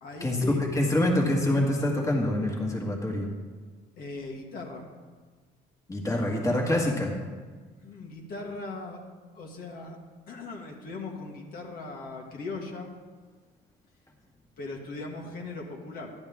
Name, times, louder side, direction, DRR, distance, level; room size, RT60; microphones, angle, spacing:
voice 1, 0.0-0.7 4.0-4.9 7.8-9.0 9.3-10.0 10.3-12.9 14.6-16.1, left 3 dB, 60° left, 0 dB, 1.9 m, -39 dB
voice 2, 0.7-3.3 5.9-7.2, left 1 dB, 20° left, -1 dB, 2.0 m, -26 dB
11.5 x 11.0 x 3.6 m, 1.4 s
cardioid pair, 110°, 17 cm